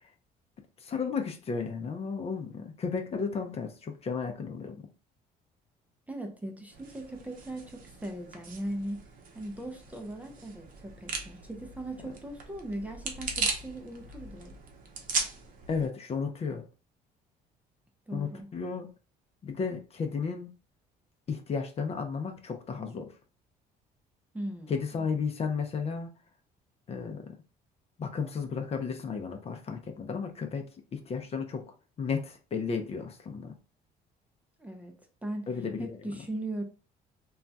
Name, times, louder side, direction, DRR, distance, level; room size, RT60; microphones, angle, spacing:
voice 1, 0.8-4.9 12.0-12.1 15.7-16.6 18.1-18.9 19.4-20.5 21.3-23.1 24.7-26.1 26.9-27.3 28.0-30.6 30.9-31.6 32.0-33.5 35.5-36.0, left 5 dB, 35° left, 5 dB, 0.6 m, -33 dB
voice 2, 6.1-9.0 9.3-14.5 18.1-18.5 24.3-24.7 34.6-35.5 35.8-36.6, right 1 dB, 10° right, 3 dB, 0.5 m, -39 dB
sound 1, 6.7-15.9, right 4 dB, 55° right, 0.7 m, -38 dB
2.3 x 2.2 x 3.9 m, 0.35 s
cardioid pair, 110°, 17 cm